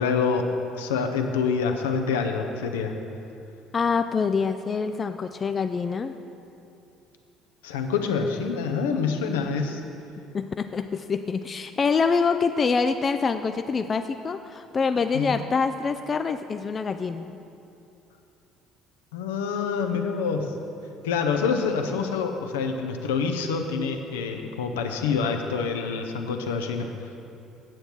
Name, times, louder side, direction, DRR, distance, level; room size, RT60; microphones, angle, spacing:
voice 1, 0.0-3.0 7.6-9.8 15.1-15.3 19.1-20.5 21.0-27.1, left 5 dB, 75° left, 4 dB, 0.6 m, -26 dB
voice 2, 3.7-6.1 10.3-17.4, left 5 dB, 35° left, 8 dB, 0.3 m, -25 dB
8.9 x 7.8 x 4.4 m, 2.7 s
figure-of-eight pair, 55°, 0 cm